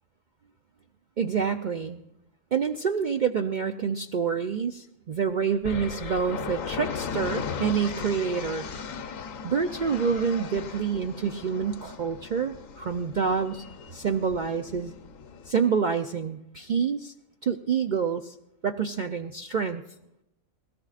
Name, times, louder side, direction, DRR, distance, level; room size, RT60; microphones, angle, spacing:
voice 1, 1.2-2.0 2.5-8.7 9.4-13.6 13.9-14.9 15.5-17.1 17.4-18.3 18.6-19.8, right 6 dB, 60° right, 6 dB, 0.5 m, -27 dB
sound 1, 5.6-15.5, left 6 dB, 75° left, 1.2 m, -37 dB
21.0 x 17.5 x 2.4 m, 0.87 s
omnidirectional pair, 1.4 m